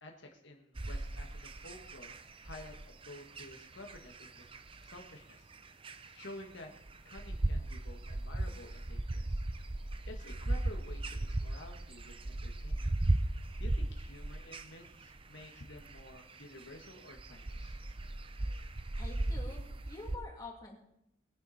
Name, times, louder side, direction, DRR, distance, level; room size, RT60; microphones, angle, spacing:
voice 1, 0.0-4.5 4.8-5.5 5.9-6.7 7.1-9.4 9.8-12.9 13.6-17.8, left 1 dB, 65° left, 2 dB, 1.7 m, -51 dB
sound 1, 0.8-20.2, right 1 dB, 25° right, 0.6 m, -37 dB
voice 2, 19.0-20.8, left 2 dB, 20° left, -2 dB, 2.9 m, -47 dB
20.5 x 10.5 x 4.3 m, 0.79 s
head